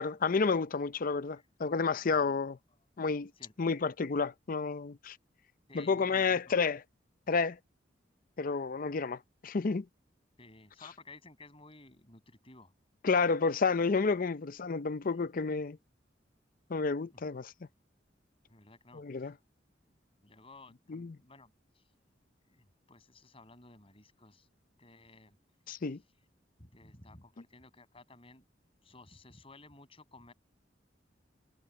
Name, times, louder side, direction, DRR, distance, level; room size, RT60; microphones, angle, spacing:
voice 1, 0.0-2.6 3.0-3.3 3.6-5.2 5.7-6.8 7.3-7.6 8.4-9.9 13.0-15.8 16.7-17.5 18.9-19.3 20.9-21.2 25.7-26.0, left 4 dB, 50° left, 0.5 m, -30 dB
voice 2, 1.8-2.4 2.7-2.8 3.4-3.5 5.7-6.6 10.4-12.7 17.1-17.3 18.5-19.3 19.9-21.9 22.4-24.5 24.8-25.4 26.6-28.4 28.8-30.3, left 2 dB, 30° left, 6.4 m, -56 dB
head